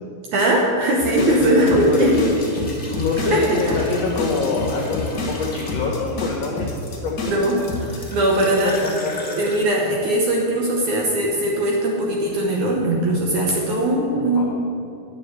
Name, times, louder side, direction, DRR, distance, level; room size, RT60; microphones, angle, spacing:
voice 1, 0.3-2.2 3.3-3.8 7.3-8.7 9.4-14.4, right 1 dB, 65° right, -1 dB, 2.0 m, -20 dB
sound 1, 1.0-8.1, left 3 dB, 45° left, 1.3 m, -29 dB
voice 2, 1.3-2.6 2.9-6.7 7.0-7.3 9.0-9.3 14.3-14.4, left 4 dB, 75° left, -1 dB, 1.5 m, -25 dB
sound 2, 1.6-6.0 6.7-9.6, left 2 dB, 5° left, 0.8 m, -34 dB
10.0 x 7.3 x 8.0 m, 2.6 s
omnidirectional pair, 4.7 m